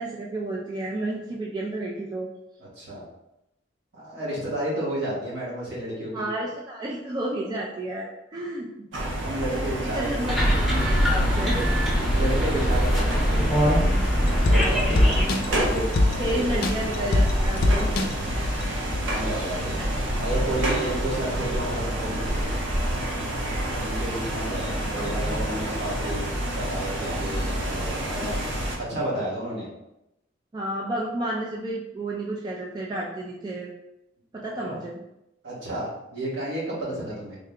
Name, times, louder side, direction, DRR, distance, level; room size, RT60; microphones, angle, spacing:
voice 1, 0.0-2.3 6.1-8.9 9.5-11.6 14.5-15.7 16.2-18.0 18.6-18.7 30.5-33.7 34.3-35.0, right 1 dB, 25° right, -3 dB, 0.3 m, -31 dB
voice 2, 2.6-3.0 3.9-6.3 9.2-10.2 11.4-11.8 12.1-13.8 14.4-15.9 16.2-16.4 18.2-18.4 19.1-19.8 20.2-22.5 23.8-26.3 26.5-28.4 28.8-29.7 34.6-34.8 35.4-37.4, right 1 dB, 65° right, -7 dB, 1.4 m, -31 dB
sound 1, 8.9-28.8, right 1 dB, 90° right, 0.8 m, -28 dB
sound 2, 10.3-15.3, equal, ahead, 0.8 m, -22 dB
sound 3, 14.0-19.2 19.6-19.7, left 2 dB, 55° left, 0.4 m, -25 dB
3.7 x 2.2 x 3.6 m, 0.88 s
head